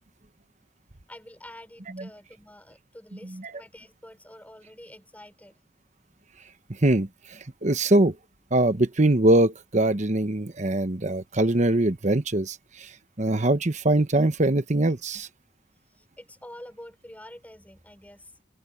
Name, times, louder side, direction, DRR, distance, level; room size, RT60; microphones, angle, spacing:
voice 1, 1.1-5.6 15.9-18.3, left 1 dB, 10° left, 5.9 m, -47 dB
voice 2, 6.8-8.1 8.5-12.6 13.2-15.3, right 1 dB, 40° right, 1.1 m, -22 dB
open air
head